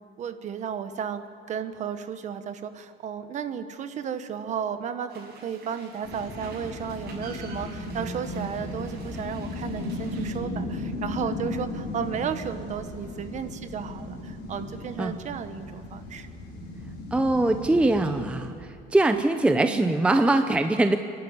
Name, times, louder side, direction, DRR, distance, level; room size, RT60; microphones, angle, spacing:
voice 1, 0.2-16.3 19.4-19.9, right 7 dB, 40° right, 9 dB, 1.3 m, -34 dB
sound 1, 5.1-10.4, right 4 dB, 60° right, 6.0 m, -48 dB
sound 2, 6.0-18.5, left 2 dB, 60° left, 4.7 m, -36 dB
voice 2, 17.1-18.5 18.9-21.0, right 2 dB, 5° right, 7 dB, 0.6 m, -22 dB
28.5 x 11.5 x 9.8 m, 2.6 s
cardioid pair, 160°, 19 cm